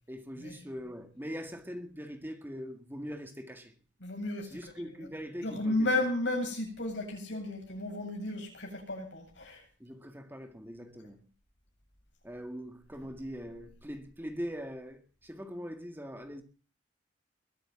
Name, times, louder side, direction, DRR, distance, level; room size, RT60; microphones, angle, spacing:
voice 1, 0.1-3.7 4.4-5.9 9.8-11.2 12.2-16.4, equal, 10° right, 1.8 m, -42 dB
voice 2, 4.0-5.1 5.4-9.6, left 2 dB, 75° left, 7.9 m, -33 dB
22.0 x 8.8 x 7.3 m
head